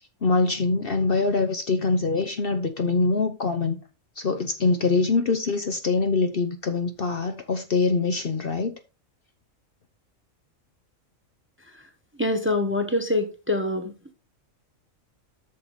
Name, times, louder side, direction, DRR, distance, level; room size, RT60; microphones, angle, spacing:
voice 1, 0.2-3.8 4.2-8.7, left 4 dB, 50° left, 0.9 m, -24 dB
voice 2, 12.2-13.9, left 2 dB, 10° right, 0.9 m, -24 dB
7.7 x 6.5 x 4.0 m
omnidirectional pair, 1.4 m